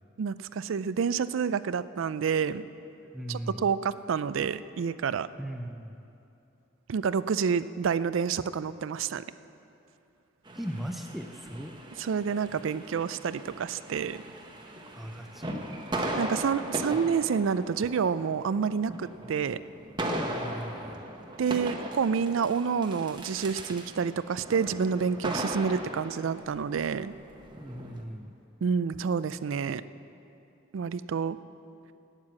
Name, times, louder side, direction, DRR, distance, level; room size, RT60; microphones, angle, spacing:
voice 1, 0.2-2.6 3.3-5.3 6.9-9.2 12.0-14.2 16.2-19.6 21.4-27.1 28.6-29.8 30.7-31.4, right 6 dB, 70° right, 15 dB, 0.4 m, -28 dB
voice 2, 3.0-3.6 5.4-6.0 10.5-11.7 14.9-15.6 16.9-17.0 20.1-21.0 27.6-28.3, equal, ahead, 4 dB, 0.5 m, -38 dB
sound 1, 10.4-28.0, right 1 dB, 20° right, 0.9 m, -38 dB
12.5 x 9.1 x 7.4 m, 2.8 s
head